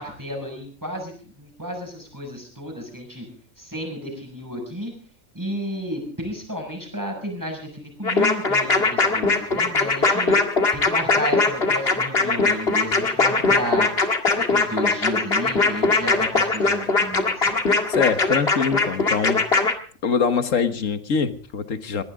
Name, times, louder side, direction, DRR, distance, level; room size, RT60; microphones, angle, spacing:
voice 1, 0.0-3.3 3.6-4.9 5.3-10.4 10.7-14.0 14.4-17.4, equal, 15° right, 2 dB, 6.8 m, -32 dB
sound 1, 8.0-19.7, left 3 dB, 45° left, 2.2 m, -20 dB
voice 2, 17.9-19.4 20.0-22.0, left 6 dB, 65° left, 10 dB, 1.7 m, -23 dB
20.5 x 18.5 x 3.8 m, 0.42 s
omnidirectional pair, 1.5 m